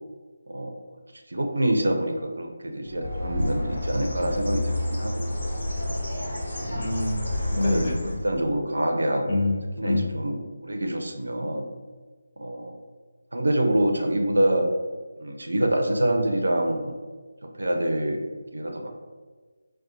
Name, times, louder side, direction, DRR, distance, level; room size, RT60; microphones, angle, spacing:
voice 1, 1.3-5.5 6.6-6.8 7.6-7.8 8.2-9.5 9.8-11.7 12.4-12.7 13.3-14.7 15.2-16.9 17.6-18.2 18.5-18.9, right 1 dB, 65° right, 3 dB, 0.4 m, -26 dB
Bird, 2.8-8.4, left 1 dB, 60° left, 1.2 m, -30 dB
voice 2, 6.7-8.2 9.2-9.6 9.8-10.1, left 2 dB, 40° left, -2 dB, 0.5 m, -26 dB
2.4 x 2.2 x 3.9 m, 1.4 s
figure-of-eight pair, 155°, 0 cm